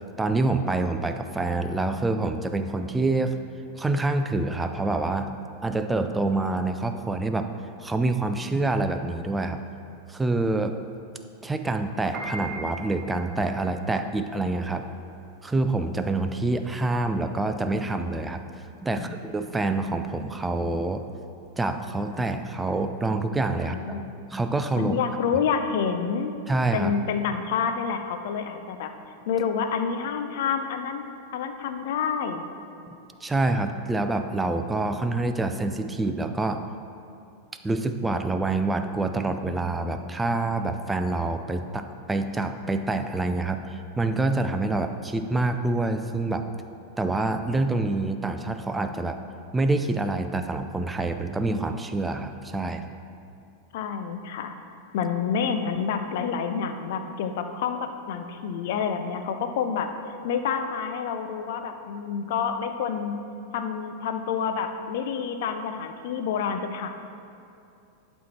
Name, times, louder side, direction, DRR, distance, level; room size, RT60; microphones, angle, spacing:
voice 1, 0.2-3.4 3.8-5.3 5.6-7.5 7.8-9.6 10.1-10.7 11.4-14.9 15.4-18.4 18.8-21.0 21.6-24.0 24.3-25.0 26.5-26.9 32.9-33.0 33.2-36.7 37.6-46.4 47.0-49.2 49.5-52.8, right 2 dB, 10° right, 7 dB, 0.4 m, -26 dB
Piano, 12.0-22.4, right 3 dB, 35° right, 1.2 m, -43 dB
voice 2, 18.9-19.2 23.6-24.1 24.8-26.3 26.7-28.9 29.3-31.0 31.3-32.5 53.7-54.5 54.9-59.9 60.2-63.1 63.5-66.9, left 6 dB, 55° left, 7 dB, 0.6 m, -28 dB
11.0 x 4.4 x 4.4 m, 2.7 s
figure-of-eight pair, 90°, 0 cm